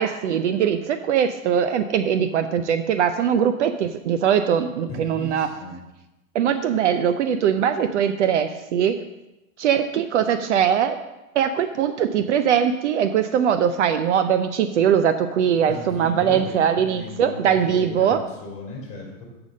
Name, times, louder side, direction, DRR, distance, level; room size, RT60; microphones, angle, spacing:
voice 1, 0.0-5.5 6.3-9.0 9.6-11.0 11.3-18.2, right 8 dB, 55° right, 10 dB, 0.6 m, -21 dB
voice 2, 4.9-5.8 15.7-19.2, left 2 dB, 15° left, -2 dB, 3.0 m, -36 dB
6.8 x 5.3 x 7.3 m, 0.99 s
hypercardioid pair, 160°, 43 cm